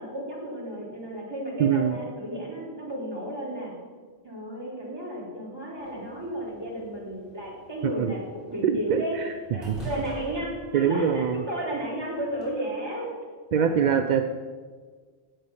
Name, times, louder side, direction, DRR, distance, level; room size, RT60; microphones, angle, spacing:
voice 1, 0.0-3.7 4.2-8.2 8.5-9.2 9.5-13.1 13.5-14.3, right 1 dB, 20° right, -6 dB, 3.8 m, -33 dB
voice 2, 1.6-2.0 7.8-8.1 8.6-9.3 9.6-9.8 10.7-11.4 13.5-14.3, right 8 dB, 55° right, 7 dB, 0.5 m, -24 dB
sound 1, 5.8-12.5, equal, ahead, 3.1 m, -46 dB
10.0 x 7.6 x 5.8 m, 1.5 s
omnidirectional pair, 1.1 m